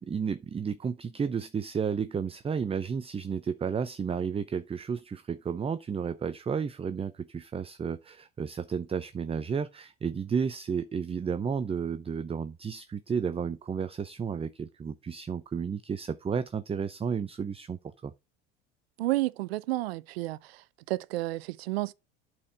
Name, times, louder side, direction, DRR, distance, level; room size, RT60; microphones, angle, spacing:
voice 1, 0.0-18.1, right 6 dB, 20° right, 0.6 m, -32 dB
voice 2, 19.0-20.4 20.9-21.9, right 18 dB, 85° right, 0.6 m, -30 dB
8.4 x 4.6 x 6.4 m
hypercardioid pair, 85°, 30 cm